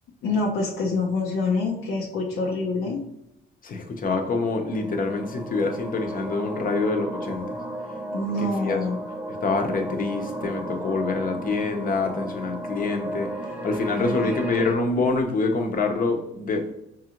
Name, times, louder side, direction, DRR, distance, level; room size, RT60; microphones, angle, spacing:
voice 1, 0.2-3.0 8.1-9.0 14.0-14.2, left 3 dB, 80° left, -3 dB, 0.7 m, -26 dB
voice 2, 3.6-7.5 8.4-8.8 9.4-16.7, left 3 dB, 45° left, 4 dB, 0.8 m, -26 dB
sound 1, 4.0-14.7, right 1 dB, 5° right, 0.5 m, -35 dB
4.7 x 2.5 x 2.9 m, 0.83 s
cardioid pair, 90°, 20 cm